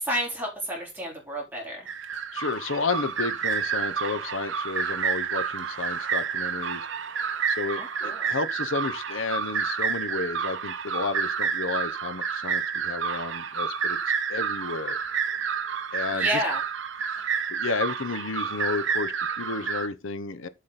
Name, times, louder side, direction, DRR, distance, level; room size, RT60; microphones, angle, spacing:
voice 1, 0.0-1.9 7.8-8.3 16.1-16.6, equal, 10° right, 4.5 m, -30 dB
sound 1, 1.9-19.9, right 6 dB, 70° right, 0.9 m, -29 dB
voice 2, 2.3-6.9 7.5-15.0 15.9-16.4 17.5-20.5, left 4 dB, 80° left, 0.9 m, -32 dB
8.4 x 5.8 x 4.3 m
head